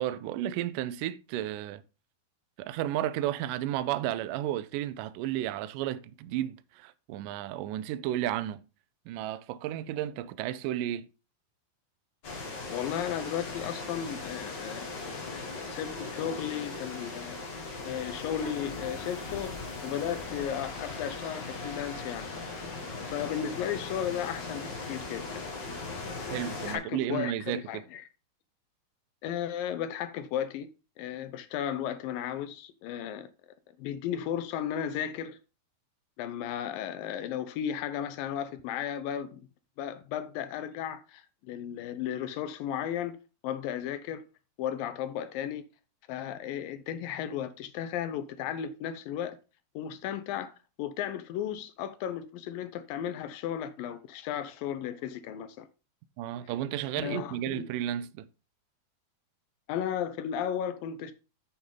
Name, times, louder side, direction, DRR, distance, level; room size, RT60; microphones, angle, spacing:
voice 1, 0.0-1.8 2.6-8.6 9.1-11.1 26.3-27.8 56.2-58.3, right 12 dB, 80° right, 2.0 m, -33 dB
sound 1, 12.2-26.7, left 3 dB, 40° left, 1.8 m, -39 dB
voice 2, 12.7-17.4 17.8-19.5 19.8-22.3 23.1-25.4 26.0-26.2 26.7-28.1 29.2-30.7 31.0-33.3 33.8-35.4 36.2-39.5 39.8-43.2 43.4-44.2 44.6-45.6 46.1-49.4 49.8-50.5 50.8-55.7 57.0-57.6 59.7-61.1, left 9 dB, 75° left, 2.3 m, -35 dB
9.5 x 7.1 x 3.9 m
omnidirectional pair, 4.4 m